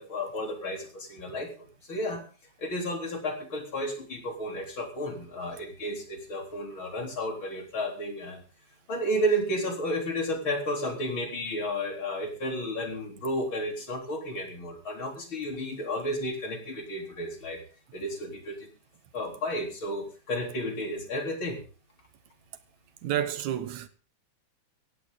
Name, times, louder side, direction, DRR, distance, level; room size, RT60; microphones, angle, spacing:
voice 1, 0.0-2.2 2.6-8.4 8.9-17.6 17.9-18.7 19.1-21.6, equal, 45° left, 4.3 m, -32 dB
voice 2, 23.0-23.9, right 11 dB, 80° right, 2.5 m, -30 dB
16.5 x 15.5 x 3.9 m
omnidirectional pair, 3.3 m